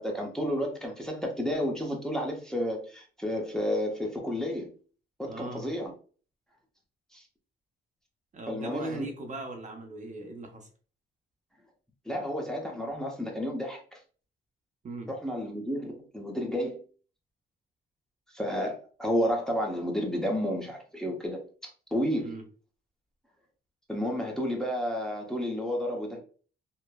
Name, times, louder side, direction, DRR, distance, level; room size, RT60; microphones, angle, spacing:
voice 1, 0.0-4.7 5.2-5.9 7.1-7.2 8.5-9.1 12.1-14.0 15.1-16.8 18.3-21.4 21.9-22.3 23.9-26.2, equal, 5° left, 0.7 m, -31 dB
voice 2, 5.2-5.7 8.3-10.7 14.8-15.1 22.2-22.4, right 2 dB, 40° right, 0.6 m, -40 dB
3.0 x 2.1 x 2.2 m
cardioid pair, 90°, 20 cm